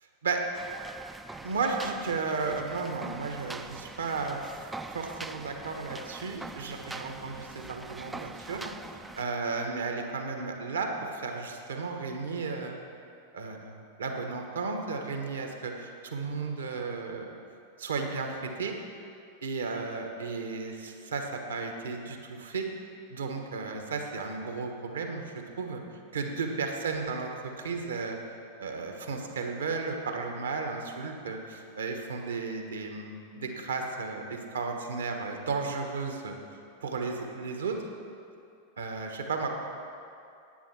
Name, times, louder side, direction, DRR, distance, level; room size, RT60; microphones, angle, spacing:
sound 1, 0.5-9.2, right 3 dB, 10° right, 0.4 m, -43 dB
voice 1, 1.4-8.6 8.9-12.9 13.3-17.3 17.8-18.7 19.4-22.7 23.1-25.8 26.1-28.2 28.6-36.3 36.8-37.8 38.8-39.5, right 4 dB, 70° right, 3 dB, 1.3 m, -34 dB
10.5 x 9.2 x 5.9 m, 2.5 s
figure-of-eight pair, 90°, 0 cm